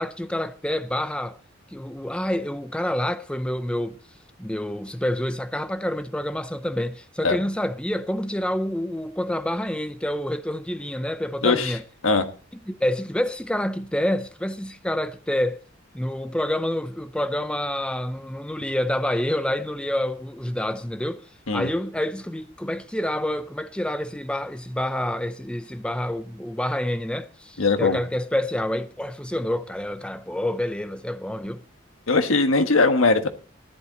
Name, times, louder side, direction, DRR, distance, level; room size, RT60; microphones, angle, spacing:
voice 1, 0.0-1.4 1.7-4.0 4.4-11.8 12.7-15.6 15.9-31.6, left 1 dB, 5° left, 0.5 m, -28 dB
voice 2, 11.4-11.7 12.0-12.2 21.5-21.7 27.6-28.0 32.1-33.3, left 3 dB, 90° left, 1.5 m, -20 dB
14.5 x 11.0 x 4.1 m
head